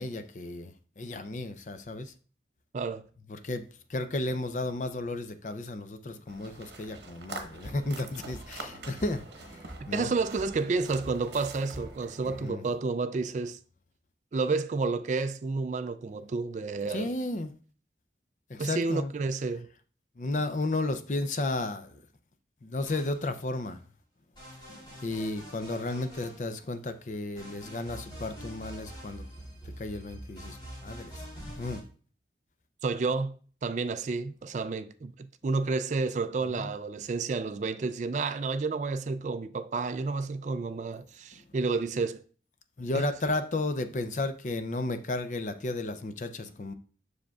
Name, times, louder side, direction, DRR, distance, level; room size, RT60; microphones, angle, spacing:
voice 1, 0.0-2.1 3.3-10.1 12.2-12.6 16.9-17.5 18.5-19.1 20.2-22.0 22.6-23.8 24.7-29.4 29.8-30.6 30.8-31.3 31.6-31.8 36.5-36.7 42.8-46.7, left 2 dB, 45° left, 0.5 m, -33 dB
sound 1, 6.3-12.5, right 3 dB, 75° right, 1.0 m, -46 dB
sound 2, 7.4-12.4, right 1 dB, 20° right, 2.1 m, -48 dB
voice 2, 9.8-13.6 14.3-17.1 18.6-19.7 32.8-33.4 33.6-42.2 42.9-43.1, right 4 dB, 40° right, 0.3 m, -30 dB
sound 3, 22.8-23.7 24.4-26.9 27.4-31.8, equal, 25° left, 3.5 m, -45 dB
7.4 x 6.4 x 2.3 m
head